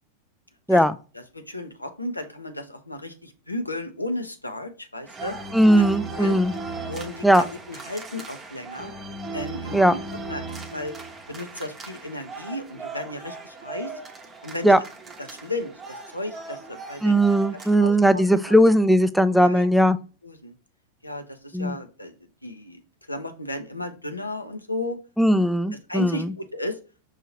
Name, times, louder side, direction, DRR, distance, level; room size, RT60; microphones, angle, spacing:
voice 1, 1.1-5.3 6.1-6.4 6.9-8.9 9.3-10.0 10.3-10.9 11.3-13.9 14.4-14.8 15.2-15.7 16.1-17.2 17.5-18.6 19.4-19.7 20.2-20.5 21.0-22.1 22.4-22.8 23.1-25.0 25.9-26.8, left 1 dB, 85° left, 6 dB, 0.6 m, -34 dB
sound 1, 5.1-17.8, right 3 dB, 20° right, 0.8 m, -37 dB
voice 2, 5.5-6.5 7.2-7.4 9.7-9.9 14.6-14.8 17.0-20.0 21.5-21.8 25.2-26.3, equal, ahead, 12 dB, 0.3 m, -18 dB
5.6 x 2.7 x 2.8 m, 0.34 s
figure-of-eight pair, 90°, 0 cm